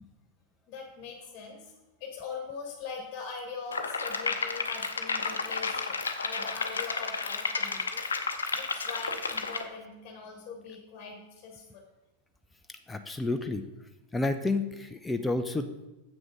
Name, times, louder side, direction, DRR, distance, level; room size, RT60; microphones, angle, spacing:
voice 1, 0.7-1.7 2.0-8.1 8.5-11.8, left 5 dB, 35° left, 1 dB, 1.6 m, -42 dB
sound 1, 3.7-9.6, left 4 dB, 70° left, 0.7 m, -32 dB
voice 2, 12.9-13.6 14.1-15.9, left 2 dB, 10° left, 7 dB, 0.5 m, -30 dB
7.5 x 6.1 x 4.9 m, 1.0 s
figure-of-eight pair, 90°, 0 cm